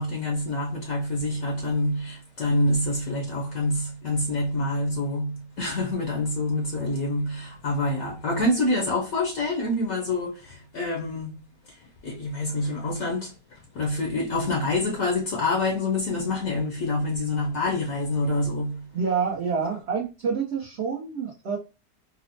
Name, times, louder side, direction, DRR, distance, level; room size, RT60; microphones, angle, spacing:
voice 1, 0.0-11.4 11.7-19.1, left 2 dB, 60° left, 1.0 m, -27 dB
voice 2, 18.9-21.6, right 6 dB, 55° right, 0.7 m, -27 dB
4.1 x 2.0 x 2.5 m
omnidirectional pair, 1.9 m